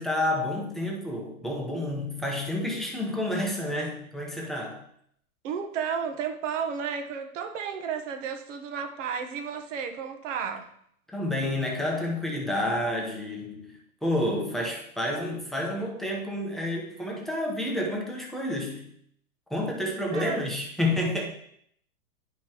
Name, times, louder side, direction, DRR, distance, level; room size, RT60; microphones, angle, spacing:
voice 1, 0.0-4.8 11.1-18.9 19.5-21.3, left 1 dB, ahead, -1 dB, 0.9 m, -29 dB
voice 2, 5.4-10.7 20.1-20.4, right 7 dB, 55° right, 6 dB, 1.1 m, -32 dB
10.0 x 5.3 x 3.0 m, 0.68 s
hypercardioid pair, 135°, 45 cm